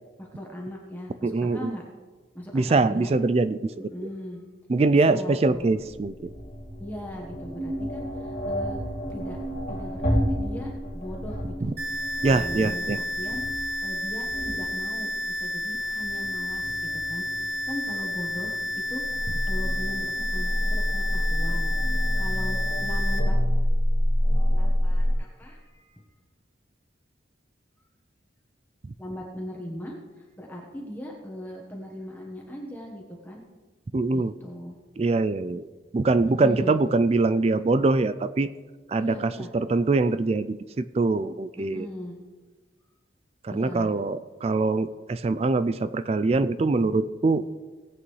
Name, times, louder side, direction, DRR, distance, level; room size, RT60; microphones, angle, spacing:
voice 1, 0.2-1.8 2.3-3.1 3.8-4.4 5.1-5.7 6.8-8.8 9.1-9.4 9.7-11.7 12.3-18.6 18.9-23.4 24.5-26.0 29.0-33.4 34.1-34.8 36.4-36.8 39.0-39.5 41.6-42.2 43.5-43.9, equal, 10° left, -2 dB, 1.2 m, -39 dB
voice 2, 1.2-1.8 2.5-3.7 4.7-6.3 11.6-11.7 12.2-13.0 33.9-34.3 35.0-35.7 35.9-38.5 38.9-41.9 43.4-47.4, right 3 dB, 35° right, 14 dB, 0.3 m, -23 dB
sound 1, 5.5-25.1, equal, 45° left, 1.7 m, -29 dB
sound 2, 11.8-23.2, left 1 dB, 55° right, 1.6 m, -31 dB
18.5 x 8.4 x 3.2 m, 1.4 s
head